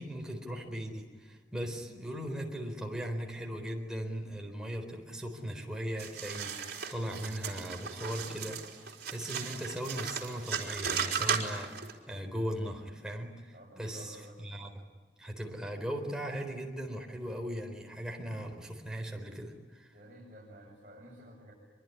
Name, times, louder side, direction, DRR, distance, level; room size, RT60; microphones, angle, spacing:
voice 1, 0.0-8.6 9.1-14.7 15.2-19.9, equal, 5° right, 1 dB, 4.1 m, -38 dB
sound 1, 6.0-11.9, right 7 dB, 60° right, 4.0 m, -36 dB
voice 2, 13.5-14.4 19.9-21.5, equal, 45° right, -5 dB, 7.6 m, -52 dB
25.5 x 23.5 x 9.9 m, 1.4 s
head